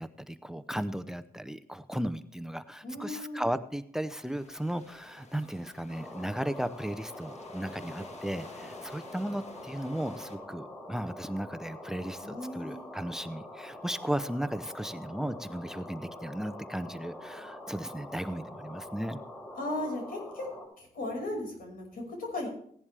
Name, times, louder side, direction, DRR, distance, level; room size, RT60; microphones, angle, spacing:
voice 1, 0.0-19.2, right 1 dB, 5° right, 13 dB, 0.6 m, -35 dB
voice 2, 2.8-3.5 12.2-12.8 19.5-20.5 20.8-22.5, left 1 dB, 75° left, 0 dB, 5.4 m, -36 dB
sound 1, 4.2-10.4, left 2 dB, 45° left, 1.7 m, -51 dB
sound 2, 5.9-20.7, left 1 dB, 25° left, 6.9 m, -45 dB
16.5 x 10.5 x 3.4 m, 0.65 s
cardioid pair, 90°, 15 cm